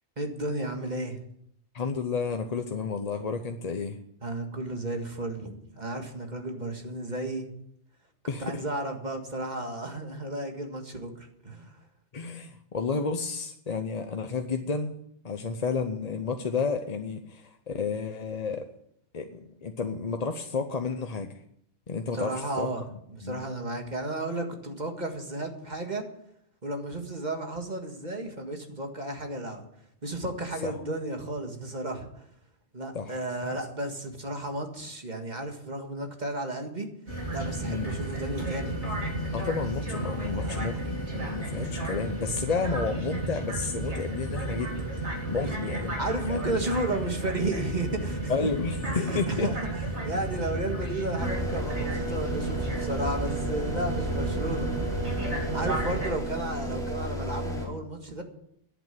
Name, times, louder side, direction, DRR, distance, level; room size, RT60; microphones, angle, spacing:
voice 1, 0.2-1.2 4.2-7.5 8.4-11.7 22.1-22.8 23.1-26.0 26.6-29.6 30.0-32.2 32.7-36.9 37.3-38.7 40.2-40.7 45.4-45.7 46.0-48.3 48.9-49.6 50.0-54.7 55.5-58.2, right 1 dB, 40° right, 4 dB, 1.9 m, -33 dB
voice 2, 1.7-4.0 8.3-8.6 12.1-15.0 15.2-18.7 19.1-21.4 21.9-22.7 23.2-23.4 30.6-30.8 32.9-33.6 37.6-37.9 39.3-44.7 45.3-46.5 48.3-49.5, left 4 dB, 40° left, 6 dB, 0.8 m, -31 dB
sound 1, 37.1-56.1, right 2 dB, 75° right, 3.6 m, -33 dB
sound 2, 51.2-57.7, right 1 dB, 5° left, 3.1 m, -33 dB
10.5 x 8.7 x 9.2 m, 0.74 s
omnidirectional pair, 1.2 m